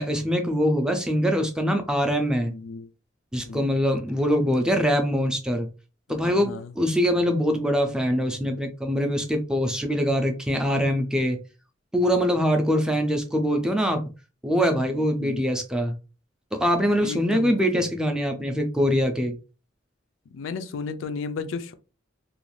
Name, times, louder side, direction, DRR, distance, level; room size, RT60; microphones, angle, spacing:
voice 1, 0.0-2.5 3.3-5.7 6.1-11.4 11.9-14.0 14.4-15.9 16.5-19.4, equal, 5° right, 0.4 m, -23 dB
voice 2, 2.5-2.9 3.5-3.7 6.2-6.7 12.9-13.0 14.8-15.4 17.0-17.9 20.3-21.7, left 4 dB, 75° left, 0.4 m, -34 dB
2.5 x 2.3 x 3.1 m
head